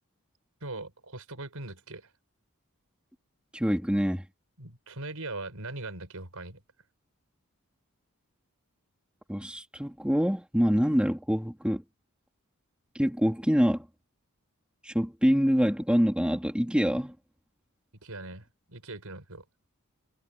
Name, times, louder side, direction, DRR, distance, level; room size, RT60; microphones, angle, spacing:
voice 1, 0.6-2.1 4.6-6.6 18.0-19.4, right 2 dB, 70° right, 5.5 m, -40 dB
voice 2, 3.5-4.2 9.3-11.8 12.9-13.9 14.8-17.1, equal, 5° right, 3.0 m, -25 dB
head